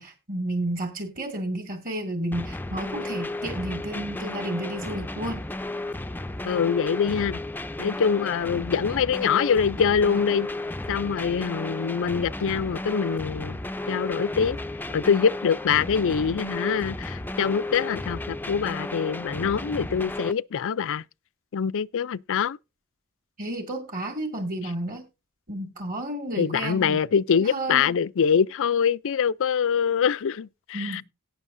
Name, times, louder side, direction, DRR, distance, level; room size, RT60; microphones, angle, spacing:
voice 1, 0.0-5.4 23.4-25.0 25.5-27.0 27.4-27.9 30.7-31.0, right 1 dB, 40° right, 2.2 m, -31 dB
sound 1, 2.3-20.3, left 2 dB, 10° left, 0.5 m, -33 dB
voice 2, 6.4-7.4 7.8-10.5 10.9-13.6 13.9-14.6 14.9-21.0 21.5-22.6 26.4-31.0, left 7 dB, 65° left, 0.5 m, -24 dB
18.0 x 6.3 x 2.6 m
head